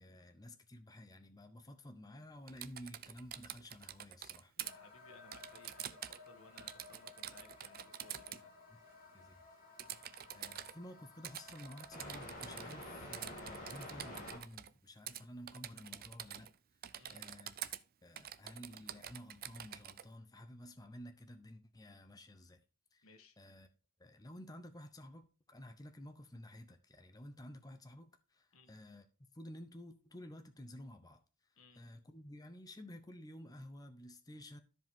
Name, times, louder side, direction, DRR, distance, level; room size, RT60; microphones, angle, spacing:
voice 1, 0.0-4.5 9.1-9.4 10.3-16.5 17.1-17.5 18.0-22.6 22.9-23.1 23.4-23.7 24.0-29.1 29.3-31.2 31.8-34.6, left 1 dB, 20° left, 0.8 m, -52 dB
Typing, 2.5-4.7 5.3-6.3 6.6-8.4 9.8-10.7 11.2-12.9 13.1-14.7 15.1-15.2 15.5-16.5 16.8-17.8 18.2-20.0, right 11 dB, 45° right, 0.5 m, -47 dB
voice 2, 4.6-8.5 17.0-17.2 23.0-23.4 28.5-28.7 31.6-31.8, left 3 dB, 85° left, 1.6 m, -61 dB
sound 1, 4.6-14.4, left 1 dB, 40° left, 2.8 m, -52 dB
13.5 x 4.9 x 3.7 m
head